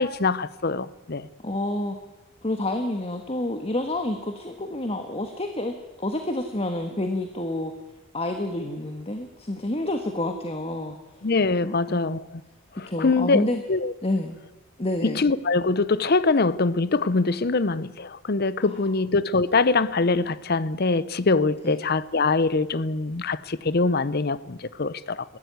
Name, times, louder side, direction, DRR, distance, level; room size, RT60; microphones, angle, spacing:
voice 1, 0.0-1.3 11.2-12.2 13.0-13.9 15.0-25.2, left 3 dB, 50° left, 0.7 m, -23 dB
voice 2, 1.4-2.0 2.4-7.7 8.1-11.3 11.6-12.1 12.9-13.6 14.0-14.4 14.8-15.2 18.7-18.8 21.6-21.9, left 1 dB, 30° left, 1.4 m, -29 dB
22.0 x 15.0 x 9.4 m
head